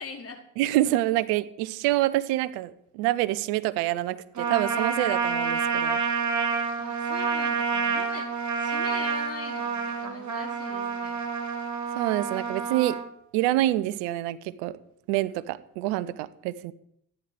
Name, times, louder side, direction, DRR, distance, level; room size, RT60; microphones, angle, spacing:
voice 1, 0.0-0.4 6.8-8.3 8.6-11.2, left 5 dB, 35° left, 2 dB, 4.6 m, -41 dB
voice 2, 0.6-6.0 11.9-13.0 13.3-14.8 15.1-16.7, right 15 dB, 75° right, 17 dB, 1.1 m, -26 dB
Trumpet, 4.4-13.0, right 5 dB, 45° right, 3.6 m, -28 dB
14.5 x 10.5 x 7.8 m, 0.73 s
hypercardioid pair, 60°, 40 cm